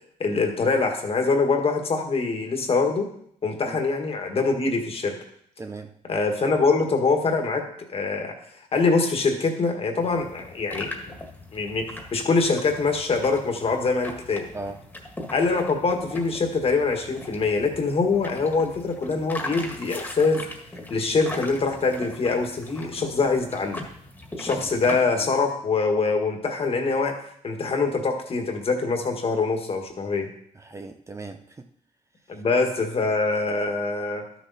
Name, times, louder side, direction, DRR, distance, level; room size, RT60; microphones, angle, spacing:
voice 1, 0.2-3.1 3.4-5.2 6.1-7.6 7.9-8.3 8.7-10.9 11.5-14.5 15.3-20.4 20.9-23.8 24.4-27.1 27.4-30.3 32.3-34.2, left 4 dB, 40° left, 4 dB, 1.6 m, -24 dB
voice 2, 5.6-5.9 14.5-14.9 24.6-24.7 25.2-25.3 30.6-31.7, right 3 dB, 20° right, 6 dB, 0.6 m, -38 dB
sound 1, 10.0-25.0, left 1 dB, 10° left, 1.7 m, -40 dB
12.0 x 6.3 x 4.1 m, 0.68 s
cardioid pair, 110°, 15 cm